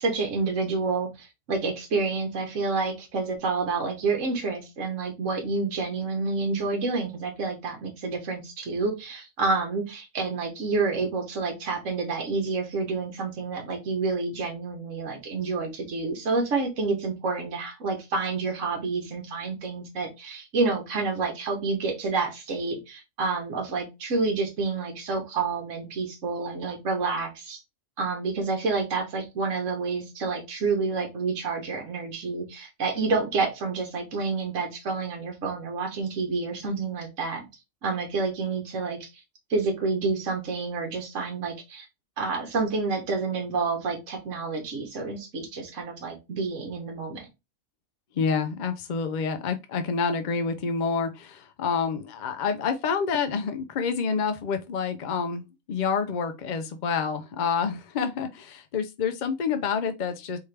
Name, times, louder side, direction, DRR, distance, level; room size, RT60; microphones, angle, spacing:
voice 1, 0.0-27.6 28.0-37.4 37.8-39.2 39.5-41.9 42.2-47.3, right 4 dB, 65° right, 1.4 m, -29 dB
voice 2, 48.2-55.4 55.7-60.4, left 5 dB, 65° left, 0.4 m, -28 dB
4.3 x 3.5 x 3.3 m
omnidirectional pair, 1.4 m